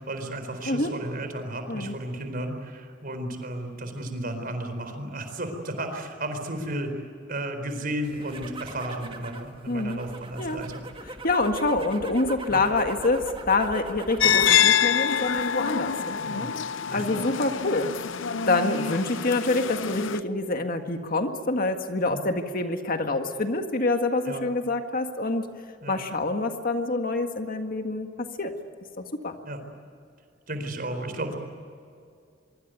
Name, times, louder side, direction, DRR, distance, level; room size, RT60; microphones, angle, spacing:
voice 1, 0.0-6.9 7.3-10.8 12.5-12.6 14.2-14.4 16.2-16.6 16.9-17.2 18.8-18.9 22.1-22.2 24.2-24.4 25.8-26.0 29.4-29.6 30.5-31.3, right 1 dB, 50° right, 6 dB, 4.6 m, -33 dB
sound 1, 8.0-14.8 15.1-15.7, right 2 dB, 30° right, 2.1 m, -40 dB
voice 2, 9.7-10.0 10.4-10.6 11.2-16.5 16.9-17.9 18.5-25.5 25.9-28.1 28.4-28.5 29.0-29.3, left 2 dB, 50° left, 6 dB, 1.8 m, -26 dB
sound 2, 14.2-20.2, left 8 dB, 80° left, 0.7 m, -25 dB
24.5 x 23.5 x 9.4 m, 2.3 s
head